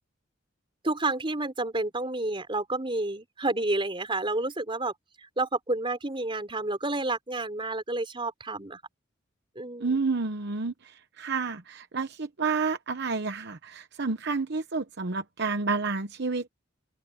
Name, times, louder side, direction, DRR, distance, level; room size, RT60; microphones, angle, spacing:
voice 1, 0.8-4.9 5.2-8.8 9.6-10.0, right 2 dB, 25° right, 3.8 m, -30 dB
voice 2, 9.8-10.7 11.2-16.5, right 4 dB, 60° right, 0.9 m, -29 dB
head